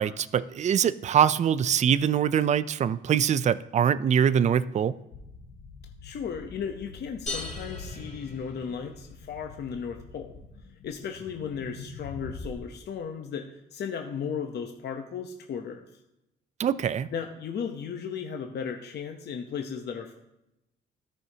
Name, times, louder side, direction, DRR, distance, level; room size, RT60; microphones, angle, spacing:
voice 1, 0.0-5.0 16.6-17.1, right 8 dB, 35° right, 16 dB, 0.4 m, -23 dB
sound 1, 5.1-12.6, left 4 dB, 75° left, 1.7 m, -44 dB
voice 2, 6.0-10.3 10.8-15.9 17.1-20.1, left 6 dB, 55° left, 4 dB, 0.8 m, -35 dB
sound 2, 7.3-9.1, left 2 dB, 35° left, 2.4 m, -39 dB
13.5 x 5.6 x 2.8 m, 0.90 s
cardioid pair, 90°, 20 cm